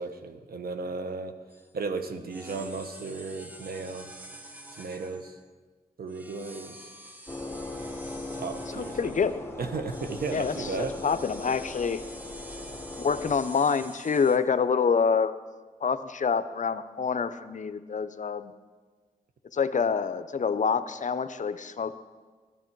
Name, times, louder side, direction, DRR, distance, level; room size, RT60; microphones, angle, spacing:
voice 1, 0.0-1.3 1.7-4.1 4.7-5.4 6.0-6.9 8.3-9.2 9.6-10.9, right 4 dB, 75° right, 8 dB, 0.9 m, -35 dB
sound 1, 1.5-1.7 2.3-5.5 6.1-9.4 9.9-14.4, right 1 dB, 10° right, 1.1 m, -47 dB
sound 2, 7.3-13.4, left 2 dB, 15° left, 1.2 m, -39 dB
voice 2, 8.7-9.3 10.3-10.7 11.0-12.0 13.0-15.3 15.8-18.5 19.5-21.9, left 6 dB, 55° left, 13 dB, 0.5 m, -26 dB
12.5 x 10.0 x 4.6 m, 1.4 s
cardioid pair, 55°, 16 cm